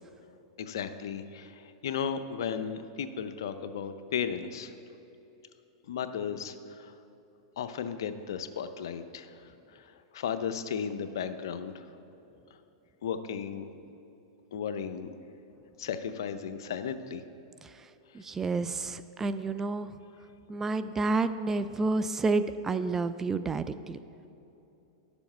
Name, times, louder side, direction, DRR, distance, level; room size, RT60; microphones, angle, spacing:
voice 1, 0.6-4.7 5.9-6.9 7.6-9.3 10.1-11.8 13.0-13.7 14.5-15.1 15.8-17.2, left 7 dB, 75° left, 10 dB, 0.6 m, -35 dB
voice 2, 18.1-19.9 20.5-24.0, right 3 dB, 15° right, 12 dB, 0.3 m, -30 dB
11.5 x 7.1 x 4.4 m, 3.0 s
hypercardioid pair, 120°, 2 cm